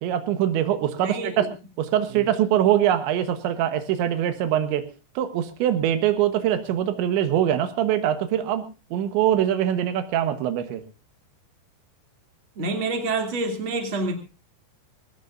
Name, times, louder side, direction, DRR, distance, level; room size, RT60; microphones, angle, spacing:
voice 1, 0.0-1.5 1.8-4.9 5.2-8.7 8.9-10.8, right 11 dB, 85° right, 9 dB, 3.6 m, -23 dB
voice 2, 1.0-1.5 2.1-2.2 12.6-14.1, right 3 dB, 30° right, 4 dB, 3.3 m, -27 dB
21.5 x 19.0 x 2.6 m, 0.31 s
omnidirectional pair, 5.1 m